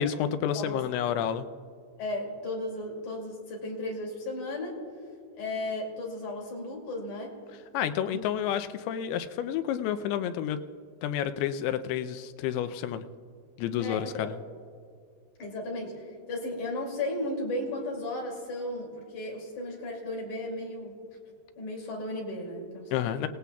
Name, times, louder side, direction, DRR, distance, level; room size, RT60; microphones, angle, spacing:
voice 1, 0.0-1.5 7.7-10.6 11.0-13.1 13.6-14.4 22.9-23.3, left 9 dB, 80° left, 10 dB, 2.5 m, -30 dB
voice 2, 2.0-4.8 5.3-7.3 8.1-8.2 13.8-14.3 15.4-21.0 21.6-22.9, left 1 dB, 50° left, -1 dB, 3.8 m, -35 dB
28.5 x 17.5 x 2.3 m, 2.2 s
omnidirectional pair, 4.8 m